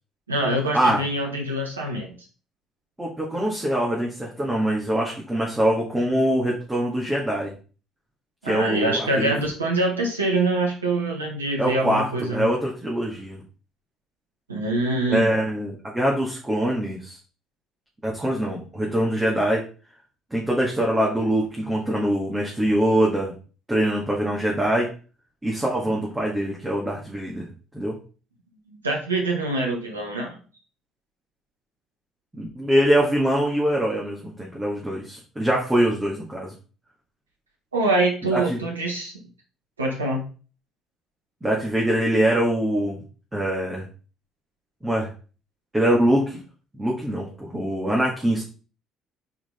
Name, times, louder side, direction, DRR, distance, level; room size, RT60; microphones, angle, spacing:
voice 1, 0.3-2.1 8.4-12.5 14.5-15.3 28.7-30.4 37.7-39.2 39.8-40.2, right 2 dB, 85° right, 0 dB, 1.1 m, -25 dB
voice 2, 3.0-7.5 8.4-9.3 11.6-13.4 15.1-17.2 18.0-19.6 20.3-23.3 23.7-24.9 25.4-27.5 27.7-28.0 32.3-36.5 38.3-38.6 41.4-43.0 43.3-43.9 44.8-45.1 45.7-46.4 46.7-48.4, right 1 dB, 15° right, -3 dB, 2.0 m, -23 dB
6.3 x 4.8 x 3.8 m, 0.36 s
figure-of-eight pair, 50°, 0 cm